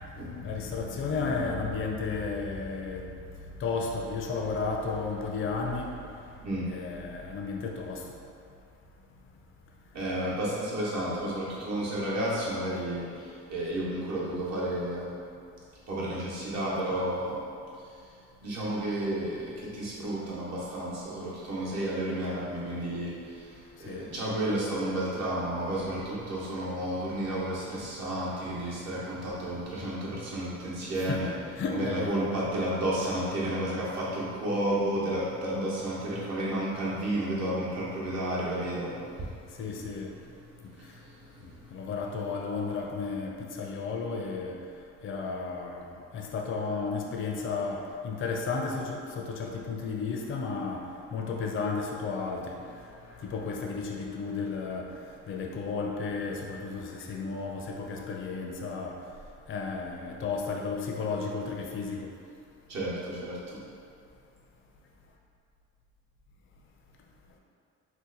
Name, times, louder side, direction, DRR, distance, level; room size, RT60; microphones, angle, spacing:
voice 1, 0.4-3.1 3.6-5.9 6.7-8.0 23.9-24.0 31.0-31.2 31.6-32.3 39.6-40.1 41.7-44.6 45.0-45.9 46.1-50.8 51.1-52.7 53.2-54.9 55.3-59.0 59.5-62.1, left 4 dB, 45° left, 0 dB, 0.4 m, -33 dB
voice 2, 9.9-15.1 15.9-17.4 18.4-31.3 31.7-39.7 40.3-41.9 62.7-63.6, right 1 dB, 60° right, -7 dB, 1.0 m, -32 dB
2.7 x 2.2 x 3.8 m, 2.4 s
cardioid pair, 90°, 30 cm